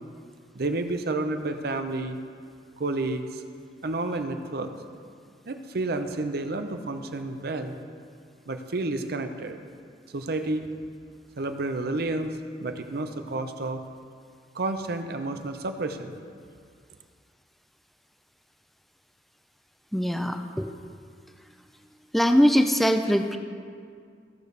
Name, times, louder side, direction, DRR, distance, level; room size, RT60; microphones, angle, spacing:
voice 1, 0.5-2.2 2.8-3.4 3.8-4.7 5.5-7.8 8.5-9.6 10.1-10.7 11.4-13.8 14.5-16.1, right 2 dB, 60° right, 7 dB, 0.7 m, -30 dB
voice 2, 19.9-20.7 22.1-23.4, equal, ahead, 6 dB, 0.4 m, -22 dB
16.0 x 6.6 x 3.3 m, 2.2 s
head